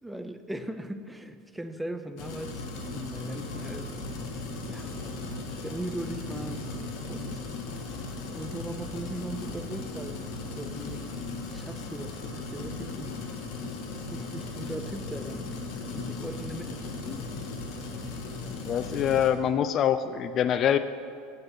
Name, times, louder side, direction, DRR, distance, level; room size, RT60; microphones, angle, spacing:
voice 1, 0.0-2.6 2.9-4.0 4.7-4.9 5.6-6.7 7.1-7.5 8.3-11.1 11.5-13.2 14.1-15.5 15.9-17.2, right 1 dB, 5° right, 9 dB, 0.6 m, -39 dB
sound 1, 2.2-19.3, left 3 dB, 60° left, 1.7 m, -37 dB
voice 2, 18.6-20.8, left 9 dB, 40° left, 12 dB, 0.4 m, -25 dB
7.9 x 7.5 x 8.0 m, 2.4 s
supercardioid pair, 125°, 0 cm